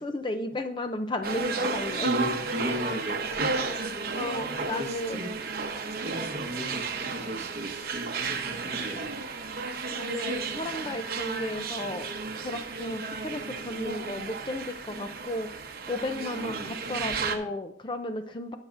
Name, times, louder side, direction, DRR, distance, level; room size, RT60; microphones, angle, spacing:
voice 1, 0.0-2.1 4.1-5.4 6.6-6.8 9.9-12.1 12.4-15.5 15.9-18.6, left 1 dB, 25° left, 8 dB, 0.5 m, -34 dB
sound 1, 1.2-17.4, right 4 dB, 55° right, 0.9 m, -33 dB
voice 2, 2.0-3.5 4.1-4.2 4.6-5.3 6.0-9.1 16.4-16.8, equal, 35° right, 3 dB, 1.2 m, -35 dB
19.0 x 6.4 x 2.5 m, 0.68 s
head